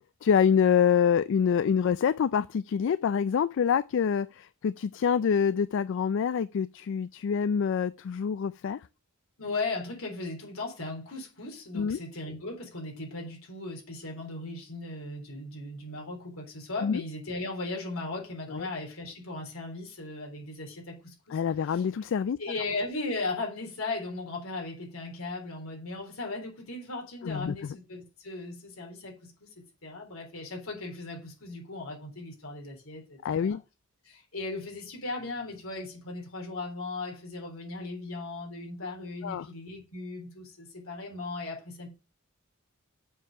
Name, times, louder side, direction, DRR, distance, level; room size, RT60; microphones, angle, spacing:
voice 1, 0.2-8.8 11.7-12.0 16.8-17.0 18.5-18.6 21.3-22.4 27.2-27.6 33.2-33.6 39.2-39.5, left 7 dB, 60° left, 0.3 m, -26 dB
voice 2, 9.4-21.9 22.4-29.5 29.8-33.6 34.0-41.9, left 2 dB, 80° left, 3.9 m, -37 dB
7.4 x 4.7 x 6.5 m
head